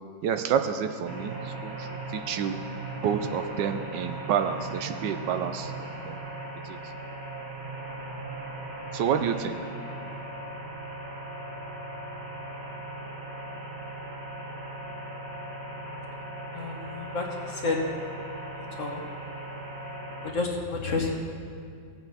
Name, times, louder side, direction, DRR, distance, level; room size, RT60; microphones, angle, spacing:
voice 1, 0.2-2.6 3.0-6.2 6.6-6.8 8.9-9.6, right 8 dB, 75° right, 8 dB, 1.3 m, -29 dB
sound 1, 1.0-20.3, right 2 dB, 35° right, 1.5 m, -38 dB
voice 2, 16.5-17.8 18.7-19.0 20.2-21.1, left 3 dB, 50° left, 1 dB, 1.3 m, -30 dB
17.0 x 7.9 x 4.1 m, 2.3 s
omnidirectional pair, 2.0 m